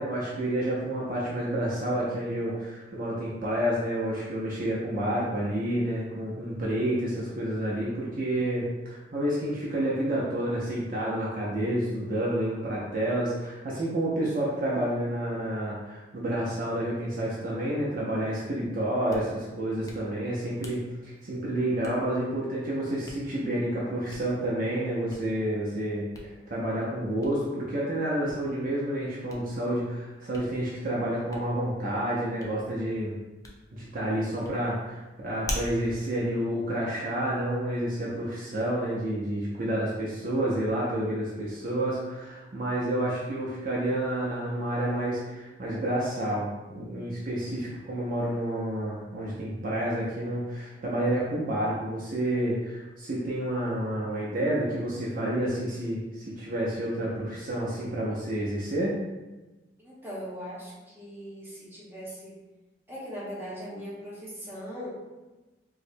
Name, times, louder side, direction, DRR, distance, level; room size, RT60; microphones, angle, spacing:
voice 1, 0.0-26.0 26.5-33.1 33.7-58.9, right 1 dB, 50° right, -6 dB, 0.6 m, -29 dB
voice 2, 5.1-5.8 59.8-62.4 62.9-64.9, equal, 10° right, -8 dB, 1.0 m, -40 dB
Hands, 18.9-37.4, left 1 dB, 20° left, 0.4 m, -46 dB
4.5 x 2.2 x 2.6 m, 1.1 s
head